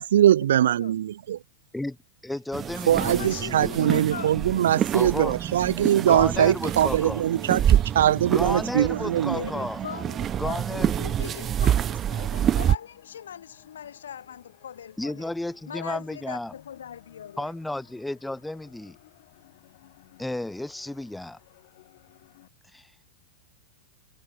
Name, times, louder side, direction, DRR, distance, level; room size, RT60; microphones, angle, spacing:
voice 1, 0.0-1.4 2.9-9.5, right 11 dB, 60° right, 0.8 m, -22 dB
voice 2, 2.2-4.0 4.9-5.4 6.1-7.2 8.3-9.8 10.4-11.1 15.0-16.5 17.4-19.0 20.2-21.4 22.7-22.9, left 1 dB, 5° left, 1.0 m, -32 dB
sound 1, 2.5-12.8, right 10 dB, 25° right, 0.7 m, -27 dB
voice 3, 3.0-4.3 6.2-7.1 9.3-15.3 15.7-17.5, left 8 dB, 65° left, 2.6 m, -40 dB
sound 2, 8.8-22.5, left 19 dB, 50° left, 6.8 m, -57 dB
figure-of-eight pair, 95°, 0 cm